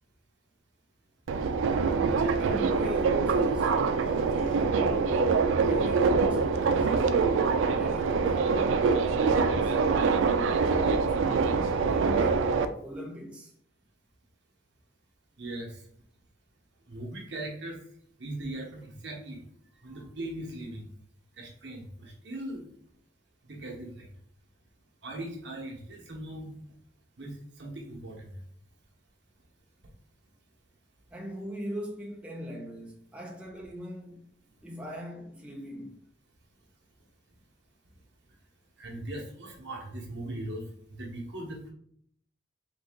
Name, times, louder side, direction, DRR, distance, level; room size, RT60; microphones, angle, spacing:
Subway metro underground, 1.3-12.7, right 4 dB, 90° right, 0.3 m, -25 dB
voice 1, 2.4-6.9 7.6-9.8 10.4-12.5 12.8-13.5 31.1-34.3 34.6-36.0, equal, 5° right, 0.5 m, -40 dB
voice 2, 15.4-15.7 16.9-17.8 18.2-19.4 19.8-20.8 21.4-22.6 23.5-24.1 25.0-26.6 27.2-28.3 38.8-40.6 40.9-41.7, right 1 dB, 65° right, 1.0 m, -39 dB
3.8 x 2.7 x 3.6 m
head